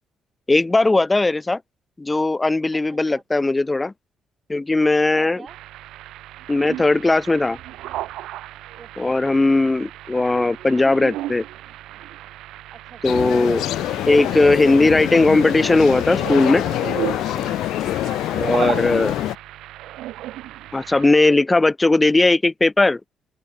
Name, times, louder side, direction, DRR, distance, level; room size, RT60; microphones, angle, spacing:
voice 1, 0.5-1.6 2.0-3.9 4.5-5.4 6.5-7.6 9.0-11.4 13.0-13.6 14.1-16.6 18.4-19.1 20.7-23.0, left 2 dB, 20° left, 1.6 m, -18 dB
voice 2, 2.9-3.2 5.1-5.6 8.8-9.3 12.7-13.2 17.3-17.6 18.0-18.5, right 6 dB, 45° right, 7.4 m, -44 dB
sound 1, 5.5-21.1, right 15 dB, 90° right, 5.0 m, -35 dB
sound 2, 13.0-19.4, left 14 dB, 85° left, 1.0 m, -25 dB
cardioid pair, 90°, 0 cm